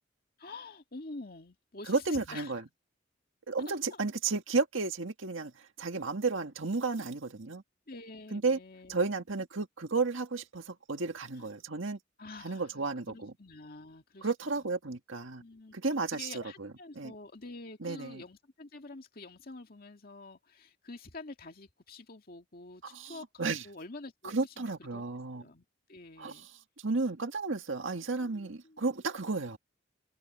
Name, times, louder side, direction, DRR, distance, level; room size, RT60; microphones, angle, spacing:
voice 1, 0.4-2.5 3.7-4.0 7.9-9.0 11.4-11.5 12.2-14.7 15.4-15.8 16.1-25.0 25.3-26.5 28.2-28.8, left 3 dB, 50° left, 2.1 m, -47 dB
voice 2, 1.9-2.6 3.5-7.6 8.3-8.6 8.9-12.0 12.4-13.3 14.2-15.4 15.7-17.1 17.8-18.2 22.8-23.7 24.2-25.4 26.2-26.5 26.8-29.6, right 4 dB, 85° right, 1.8 m, -33 dB
head